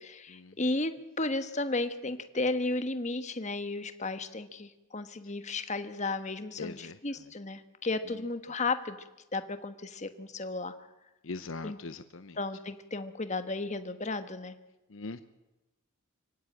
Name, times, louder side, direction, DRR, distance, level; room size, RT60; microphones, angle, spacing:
voice 1, 0.0-9.0 9.3-10.9 11.6-11.8 12.4-14.5, left 2 dB, 35° left, 10 dB, 1.3 m, -34 dB
voice 2, 6.6-7.3 8.0-8.3 11.2-12.4 14.9-15.2, left 3 dB, 70° left, 11 dB, 0.8 m, -42 dB
24.5 x 16.0 x 9.0 m, 1.0 s
head